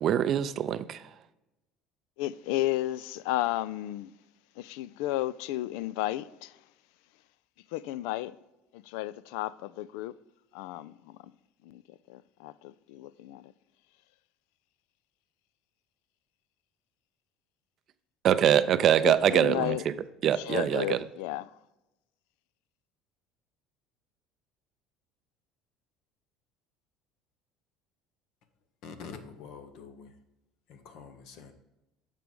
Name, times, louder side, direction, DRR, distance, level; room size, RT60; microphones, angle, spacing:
voice 1, 0.0-1.0 18.2-19.9 20.2-21.0, right 10 dB, 40° right, 0.4 m, -24 dB
voice 2, 2.2-4.1 4.6-6.5 7.7-8.3 8.7-10.1 10.5-11.2 11.6-11.8 12.1-13.5 19.0-19.8 20.4-21.5, left 15 dB, 90° left, 0.3 m, -33 dB
voice 3, 28.8-30.2 30.7-31.5, left 5 dB, 60° left, 1.0 m, -46 dB
7.5 x 4.6 x 5.3 m
cardioid pair, 145°, 0 cm